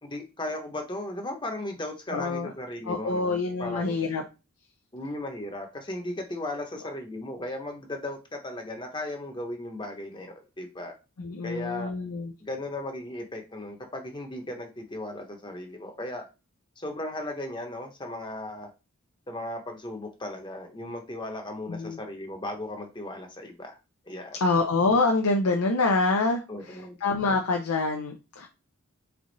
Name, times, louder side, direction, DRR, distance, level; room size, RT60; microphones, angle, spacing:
voice 1, 0.0-4.0 4.9-10.9 11.4-11.9 12.4-16.2 16.8-18.7 19.3-23.8 24.1-24.4 26.5-26.9, left 1 dB, 20° left, 3 dB, 0.8 m, -36 dB
voice 2, 2.1-2.5 2.8-4.2 11.2-12.3 21.7-22.0 24.4-28.5, left 3 dB, 85° left, 2 dB, 0.7 m, -26 dB
3.8 x 3.4 x 3.9 m, 0.28 s
head